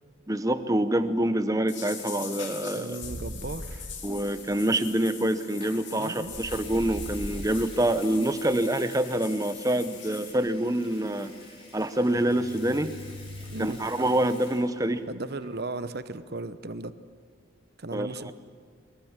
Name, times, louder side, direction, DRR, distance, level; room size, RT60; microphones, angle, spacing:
voice 1, 0.3-3.0 4.0-11.3 11.7-12.9 13.6-15.0 17.9-18.3, right 1 dB, 15° right, 10 dB, 0.9 m, -26 dB
sound 1, 1.7-10.3, left 7 dB, 55° left, 3.1 m, -43 dB
voice 2, 2.7-3.9 6.0-6.4 13.5-13.8 15.1-16.9 17.8-18.3, right 2 dB, 50° right, 13 dB, 0.9 m, -36 dB
sound 2, 3.0-4.0 6.2-7.8 12.0-13.6, equal, 80° right, 1.7 m, -40 dB
Water tap faucet / Sink (filling or washing) / Liquid, 5.6-5.8 6.3-15.0 15.3-15.6, left 3 dB, 25° left, 4.2 m, -50 dB
22.5 x 21.0 x 7.3 m, 2.1 s
head